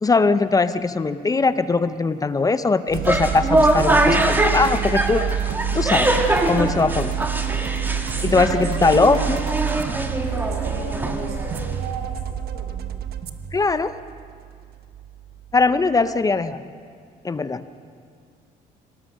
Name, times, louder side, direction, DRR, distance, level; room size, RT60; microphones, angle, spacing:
voice 1, 0.0-6.2 6.5-7.1 8.2-9.4 13.5-13.9 15.5-16.6 17.2-17.6, left 3 dB, 20° left, 12 dB, 0.7 m, -20 dB
sound 1, 2.9-11.9, right 1 dB, 10° right, 1.8 m, -23 dB
sound 2, 2.9-16.3, right 8 dB, 65° right, 1.2 m, -28 dB
voice 2, 8.2-9.3 10.1-12.8, right 4 dB, 90° right, 0 dB, 6.6 m, -33 dB
25.0 x 18.0 x 6.5 m, 2.2 s
cardioid pair, 110°, 17 cm